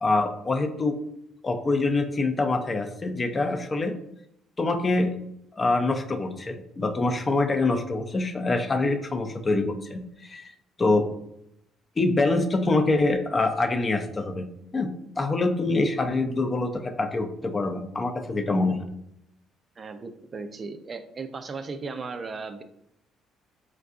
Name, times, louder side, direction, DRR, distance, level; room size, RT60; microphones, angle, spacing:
voice 1, 0.0-1.0 1.4-3.9 4.6-5.1 5.5-10.5 10.8-11.0 12.0-14.5 14.7-14.9 15.2-18.8, left 2 dB, 35° left, 5 dB, 0.5 m, -25 dB
voice 2, 19.8-22.6, right 4 dB, 40° right, 8 dB, 0.4 m, -36 dB
4.3 x 2.4 x 2.4 m, 0.77 s
supercardioid pair, 60°, 0 cm